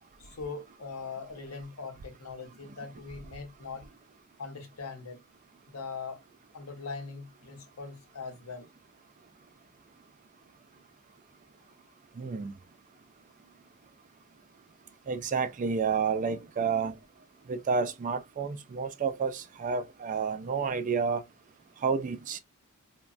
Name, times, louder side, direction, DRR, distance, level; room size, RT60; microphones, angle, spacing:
voice 1, 0.2-3.8 4.4-5.2 5.7-6.2 6.5-8.7 13.4-13.6, left 4 dB, 80° left, 0.9 m, -41 dB
voice 2, 12.2-12.5 15.1-17.0 17.5-21.2 21.8-22.4, right 5 dB, 35° right, 0.3 m, -30 dB
3.1 x 2.2 x 2.4 m
head